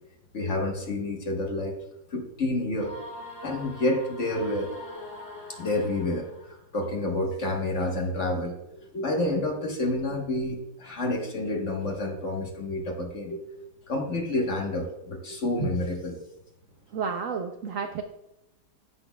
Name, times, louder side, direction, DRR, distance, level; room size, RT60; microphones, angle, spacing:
voice 1, 0.3-1.8 2.1-2.9 3.4-4.7 5.5-13.4 13.9-16.2, left 2 dB, 45° left, 2 dB, 1.4 m, -29 dB
sound 1, 2.8-6.6, left 1 dB, 85° left, 3.3 m, -43 dB
voice 2, 16.9-18.0, right 6 dB, 70° right, 5 dB, 0.8 m, -31 dB
15.5 x 6.2 x 2.3 m, 0.91 s
omnidirectional pair, 2.0 m